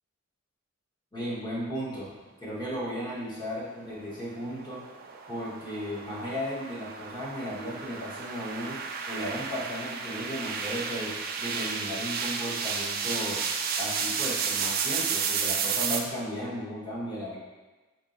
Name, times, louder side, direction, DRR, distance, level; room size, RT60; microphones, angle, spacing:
voice 1, 1.1-2.1 2.4-4.8 5.3-13.4 13.8-17.4, equal, 20° left, -8 dB, 1.3 m, -35 dB
sound 1, 3.9-16.0, right 6 dB, 45° right, 0.4 m, -32 dB
4.6 x 3.9 x 2.6 m, 1.2 s
head